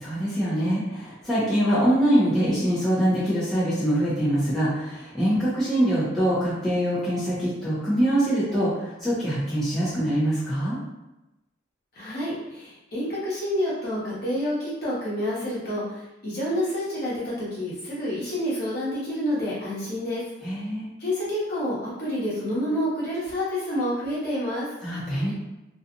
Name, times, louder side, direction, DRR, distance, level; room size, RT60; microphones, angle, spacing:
voice 1, 0.0-10.8 20.4-20.9 24.8-25.3, equal, ahead, -12 dB, 0.7 m, -24 dB
voice 2, 11.9-20.2 21.0-24.7, equal, 55° left, -9 dB, 1.1 m, -28 dB
2.7 x 2.3 x 2.5 m, 0.98 s
head